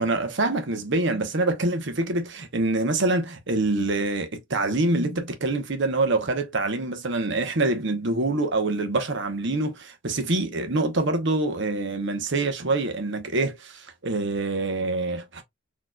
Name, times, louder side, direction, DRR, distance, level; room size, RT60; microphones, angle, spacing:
voice 1, 0.0-15.4, right 2 dB, 60° right, 1.0 m, -25 dB
4.2 x 3.0 x 2.3 m
head